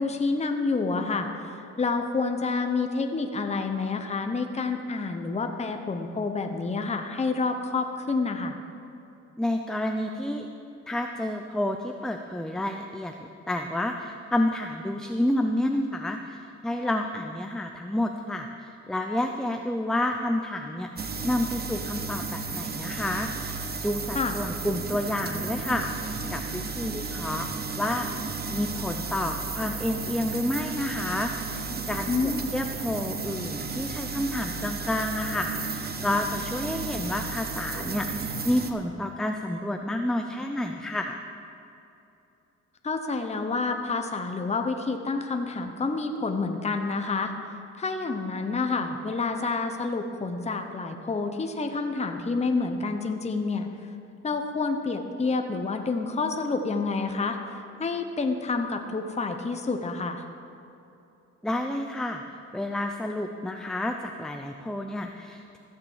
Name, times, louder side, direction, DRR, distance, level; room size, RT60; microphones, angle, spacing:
voice 1, 0.0-8.6 24.1-24.3 32.1-32.5 42.8-47.3 47.8-53.7 54.2-60.2, left 4 dB, 20° left, 5 dB, 0.9 m, -28 dB
voice 2, 9.4-10.5 10.9-13.2 13.5-27.5 27.8-28.1 28.5-41.2 61.4-65.6, left 1 dB, ahead, 4 dB, 0.6 m, -30 dB
sound 1, 21.0-38.7, right 4 dB, 30° right, 1.0 m, -33 dB
15.0 x 6.8 x 7.3 m, 2.8 s
cardioid pair, 90°, 30 cm